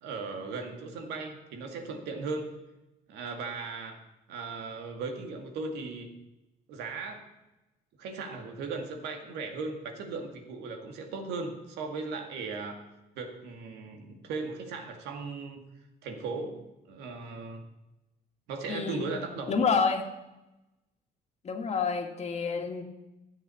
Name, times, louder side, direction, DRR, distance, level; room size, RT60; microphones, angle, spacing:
voice 1, 0.0-2.5 3.1-4.0 4.3-6.1 6.7-7.3 8.0-12.8 13.2-15.7 16.0-16.6 16.9-17.6 18.5-19.6, right 4 dB, 85° right, 4 dB, 2.2 m, -37 dB
voice 2, 18.7-19.1 19.5-20.1 21.4-22.8, left 5 dB, 40° left, 4 dB, 1.9 m, -28 dB
13.0 x 8.0 x 7.0 m, 0.98 s
cardioid pair, 110°, 17 cm